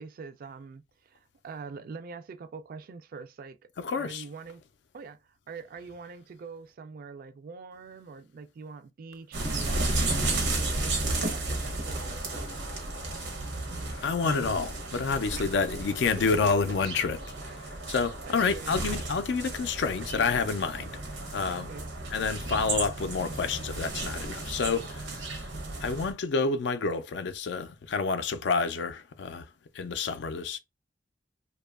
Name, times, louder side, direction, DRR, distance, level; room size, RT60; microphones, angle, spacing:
voice 1, 0.0-3.6 3.9-4.6 4.9-10.1 10.5-12.5 15.3-15.5 16.1-16.2 17.4-17.5 18.2-18.9 21.5-21.9, right 4 dB, 50° right, 0.3 m, -44 dB
voice 2, 3.8-4.2 14.0-17.2 17.6-20.9 21.2-21.7 22.1-25.5 25.8-29.5 29.7-30.6, left 4 dB, 65° left, 0.4 m, -29 dB
sound 1, 9.3-26.1, right 2 dB, 90° right, 0.7 m, -33 dB
2.7 x 2.3 x 2.2 m
head